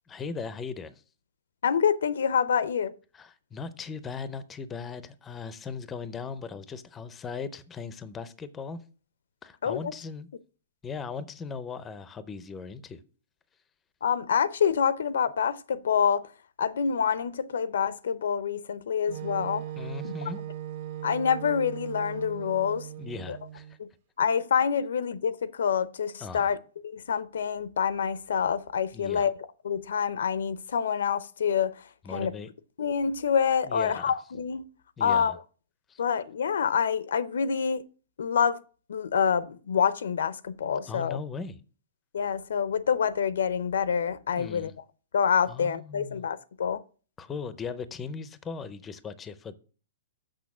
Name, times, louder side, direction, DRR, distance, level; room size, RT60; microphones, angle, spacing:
voice 1, 0.1-1.0 3.1-8.8 9.4-10.3 10.8-13.0 19.8-20.4 23.0-23.8 26.2-26.6 28.9-29.3 32.0-32.5 33.6-34.2 35.0-35.4 35.9-36.0 40.9-41.6 44.3-44.7 45.5-46.3 47.2-49.5, left 5 dB, 15° left, 0.5 m, -38 dB
voice 2, 1.6-2.9 9.6-9.9 14.0-16.3 16.6-19.6 20.0-20.1 21.0-22.9 23.3-23.4 23.8-23.9 24.2-26.6 26.8-29.3 29.6-32.3 32.8-34.6 35.0-35.4 36.0-37.8 38.2-38.6 38.9-41.2 42.1-44.7 45.1-46.8, left 7 dB, 85° left, 0.6 m, -27 dB
Wind instrument woodwind instrument, 19.1-23.8, right 12 dB, 55° right, 1.3 m, -39 dB
6.4 x 6.2 x 6.0 m
hypercardioid pair, 160°, 0 cm